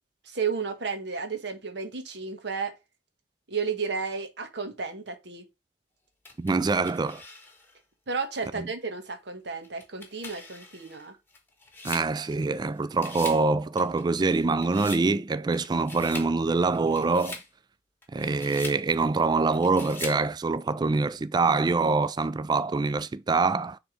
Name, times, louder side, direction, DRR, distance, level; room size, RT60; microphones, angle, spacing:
voice 1, 0.3-2.7 3.5-5.4 8.1-11.2, right 5 dB, 65° right, 1.3 m, -32 dB
sound 1, 6.2-7.8 8.3-8.4 9.6-12.6 12.9-13.5 13.8-15.1 15.5-16.3 16.7-17.5 18.0-18.8 19.5-20.2, left 3 dB, 10° left, 1.2 m, -42 dB
voice 2, 6.4-7.2 8.6-8.7 11.8-17.4 18.1-23.8, right 3 dB, 25° right, 0.3 m, -25 dB
6.3 x 3.5 x 5.0 m
head